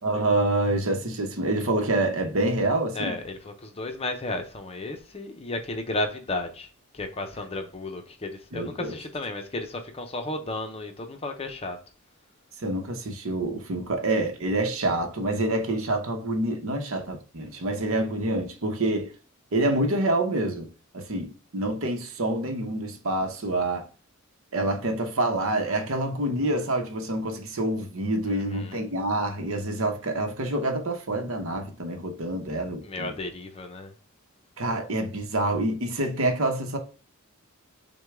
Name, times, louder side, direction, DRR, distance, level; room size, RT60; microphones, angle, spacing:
voice 1, 0.0-3.2 8.5-8.9 12.6-19.1 19.5-20.7 20.9-23.9 24.5-33.1 34.6-36.8, right 1 dB, 65° right, 0.9 m, -27 dB
voice 2, 2.9-11.8 28.2-28.9 32.8-33.9, left 2 dB, 25° left, 0.6 m, -33 dB
6.2 x 2.2 x 3.5 m
head